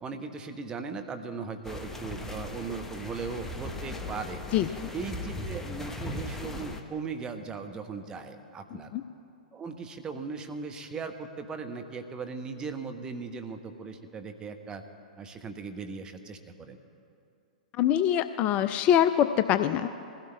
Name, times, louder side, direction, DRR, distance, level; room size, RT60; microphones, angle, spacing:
voice 1, 0.0-4.4 4.7-8.9 9.5-14.8 15.2-16.8, right 4 dB, 20° right, 6 dB, 0.9 m, -38 dB
sound 1, 1.6-6.8, left 2 dB, 10° left, 0.9 m, -38 dB
voice 2, 17.8-19.9, left 10 dB, 30° left, 11 dB, 0.3 m, -24 dB
22.0 x 16.0 x 2.3 m, 2.6 s
figure-of-eight pair, 105°, 4 cm